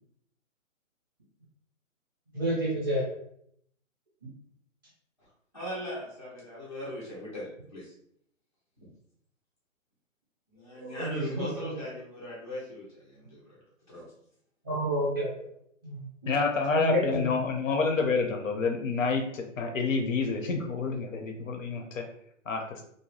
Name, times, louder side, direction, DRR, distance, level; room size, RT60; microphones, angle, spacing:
voice 1, 2.3-3.0 10.8-11.7 14.6-15.5 15.8-16.3 16.7-17.3, right 1 dB, 15° right, -7 dB, 0.6 m, -30 dB
voice 2, 5.5-7.9 8.8-8.9 10.5-13.6 13.9-14.1, left 1 dB, 25° left, -10 dB, 0.4 m, -39 dB
voice 3, 16.3-22.0 22.5-22.8, left 4 dB, 70° left, 3 dB, 0.7 m, -28 dB
2.7 x 2.0 x 3.1 m, 0.70 s
hypercardioid pair, 170°, 40 cm